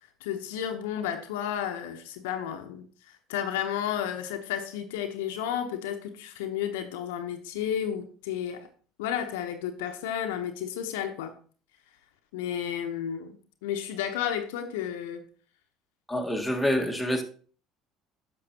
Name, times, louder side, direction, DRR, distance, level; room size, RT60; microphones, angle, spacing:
voice 1, 0.2-8.7 9.0-11.3 12.3-15.2, left 9 dB, 75° left, 0.9 m, -32 dB
voice 2, 16.1-17.2, equal, ahead, 1.6 m, -27 dB
10.5 x 6.2 x 2.9 m
hypercardioid pair, 65°, 0 cm